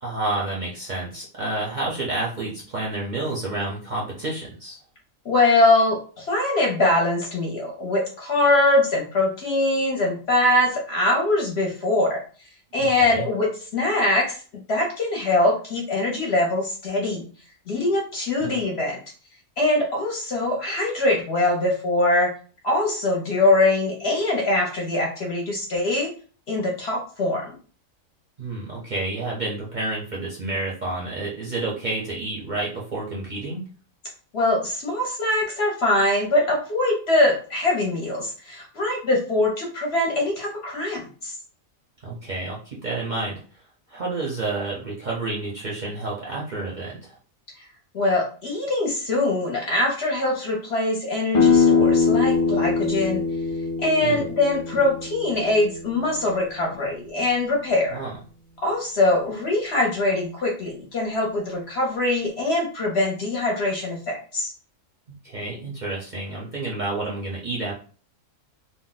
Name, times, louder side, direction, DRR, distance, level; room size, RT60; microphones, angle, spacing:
voice 1, 0.0-4.8 12.8-13.3 18.4-18.6 28.4-33.6 42.0-43.4 43.9-47.2 54.0-54.2 57.9-58.1 65.1-67.7, right 2 dB, 45° right, -4 dB, 0.6 m, -29 dB
voice 2, 5.2-14.4 14.7-17.2 17.7-19.0 19.6-22.3 22.6-26.1 26.5-27.5 34.3-41.3 47.6-47.7 47.9-53.2 53.8-58.0 58.6-64.5, left 2 dB, 55° left, -1 dB, 0.9 m, -23 dB
sound 1, 51.3-56.9, left 5 dB, 40° left, 0.5 m, -22 dB
2.5 x 2.1 x 3.8 m, 0.40 s
omnidirectional pair, 1.4 m